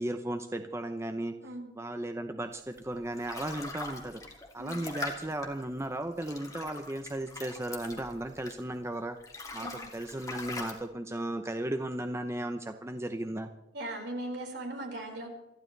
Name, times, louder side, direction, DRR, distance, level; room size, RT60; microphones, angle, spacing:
voice 1, 0.0-1.3 1.8-4.2 4.5-9.2 9.5-13.5, right 1 dB, 15° right, 7 dB, 0.8 m, -35 dB
voice 2, 1.4-1.7 4.6-4.8 9.6-9.8 13.7-15.3, right 1 dB, 70° right, 0 dB, 5.1 m, -39 dB
sound 1, 2.7-8.8 9.1-10.7, left 3 dB, 20° left, 2.5 m, -42 dB
28.0 x 12.0 x 3.4 m, 0.93 s
head